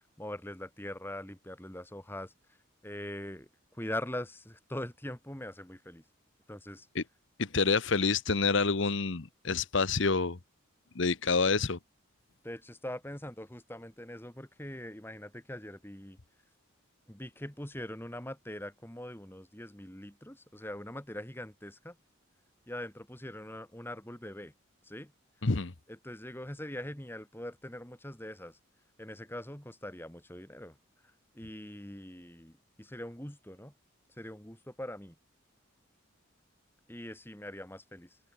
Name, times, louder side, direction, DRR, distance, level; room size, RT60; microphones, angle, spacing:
voice 1, 0.2-2.3 2.8-6.0 6.5-6.9 12.4-16.2 17.1-22.0 22.7-24.5 24.8-25.1 25.9-28.6 29.0-30.8 31.3-33.7 34.2-35.2 36.9-38.1, left 1 dB, 10° left, 2.1 m, -42 dB
voice 2, 7.4-10.4 10.9-11.8 25.4-25.7, left 4 dB, 65° left, 1.0 m, -28 dB
open air
head